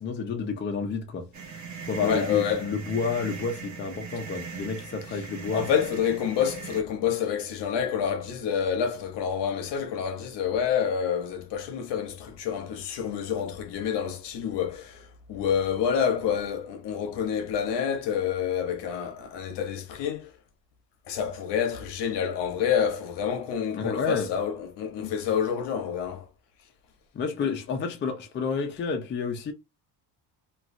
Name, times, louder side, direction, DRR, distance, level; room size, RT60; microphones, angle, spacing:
voice 1, 0.0-5.7 23.7-24.3 25.0-25.1 27.1-29.5, left 5 dB, 25° left, 0.5 m, -30 dB
sound 1, 1.3-6.8, right 6 dB, 40° right, 0.6 m, -39 dB
voice 2, 2.0-2.8 5.5-20.3 21.1-26.3, left 8 dB, 70° left, 0.8 m, -28 dB
3.0 x 2.3 x 2.5 m
cardioid pair, 145°, 43 cm